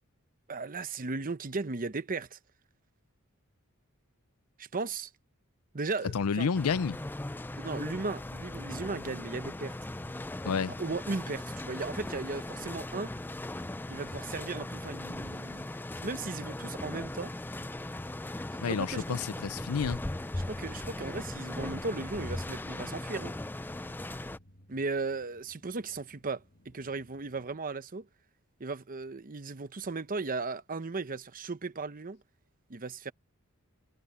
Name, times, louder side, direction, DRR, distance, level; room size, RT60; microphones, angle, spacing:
voice 1, 0.5-2.4 4.6-5.1 5.7-6.5 7.6-9.8 10.8-13.1 13.9-15.7 16.0-17.3 18.7-19.2 20.4-23.3 24.7-28.1 28.6-32.2 32.7-33.1, right 3 dB, 40° right, 0.9 m, -36 dB
voice 2, 6.1-7.0 10.4-10.7 18.6-20.0, left 6 dB, 85° left, 0.5 m, -30 dB
sound 1, 6.5-24.4, left 1 dB, 10° left, 0.4 m, -39 dB
sound 2, 17.3-27.5, left 1 dB, 45° left, 2.0 m, -64 dB
head